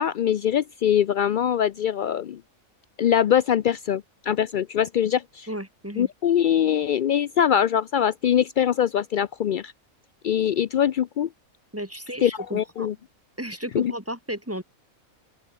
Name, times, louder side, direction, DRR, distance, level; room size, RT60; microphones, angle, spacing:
voice 1, 0.0-2.4 3.0-5.5 6.0-9.7 10.2-11.3 12.2-12.9 13.7-13.9, left 9 dB, 75° left, 0.4 m, -23 dB
voice 2, 5.5-6.1 11.7-12.9 13.4-14.6, right 1 dB, 10° right, 2.5 m, -33 dB
open air
omnidirectional pair, 1.4 m